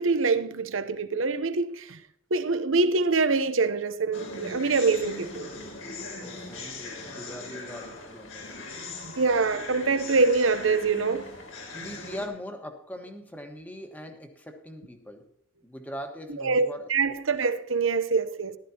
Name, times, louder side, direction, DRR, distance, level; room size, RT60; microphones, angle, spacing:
voice 1, 0.0-2.0 2.3-5.5 9.0-11.3 16.4-18.6, right 4 dB, 85° right, 0.8 m, -25 dB
sound 1, 4.1-12.3, left 2 dB, 85° left, 3.1 m, -40 dB
voice 2, 6.1-8.7 11.7-15.3 15.6-16.9, equal, 10° left, 1.3 m, -41 dB
14.5 x 12.5 x 2.9 m
head